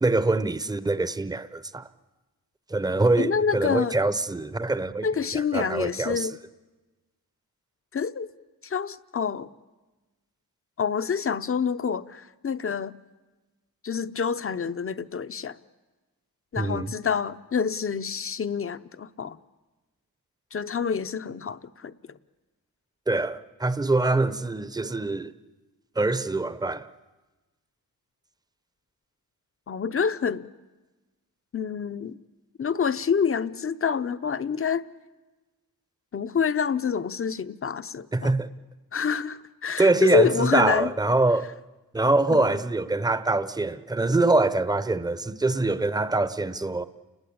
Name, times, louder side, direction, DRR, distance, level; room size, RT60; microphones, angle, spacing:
voice 1, 0.0-1.8 2.7-5.1 5.3-6.3 16.6-16.9 23.1-25.3 26.0-26.9 38.1-38.5 39.8-41.5 41.9-46.9, right 2 dB, 10° right, 0.8 m, -24 dB
voice 2, 3.2-4.0 5.0-6.3 7.9-8.3 8.6-9.5 10.8-13.0 13.8-15.6 16.5-19.4 20.5-22.2 29.7-30.5 31.5-32.2 32.6-34.8 36.1-38.3 38.9-40.9 42.3-42.6, left 6 dB, 35° left, 0.8 m, -27 dB
30.0 x 20.5 x 8.6 m
wide cardioid pair, 105°, 36 cm